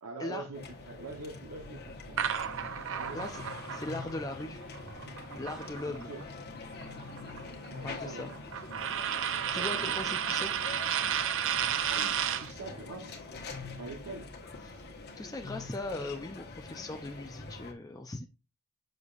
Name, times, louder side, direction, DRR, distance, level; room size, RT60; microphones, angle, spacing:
voice 1, 0.0-3.2 5.9-6.2 7.7-8.3 9.5-10.1 11.7-13.3 13.8-14.9, right 3 dB, 85° right, 1.0 m, -45 dB
sound 1, 0.5-17.7, left 3 dB, 45° left, 1.3 m, -44 dB
sound 2, 2.2-6.2 6.5-12.5, right 9 dB, 60° right, 0.6 m, -33 dB
voice 2, 3.7-4.6 5.4-6.1 7.8-8.3 9.5-10.5 14.6-14.7 15.2-18.3, left 2 dB, 15° left, 0.5 m, -39 dB
6.9 x 6.4 x 2.4 m
head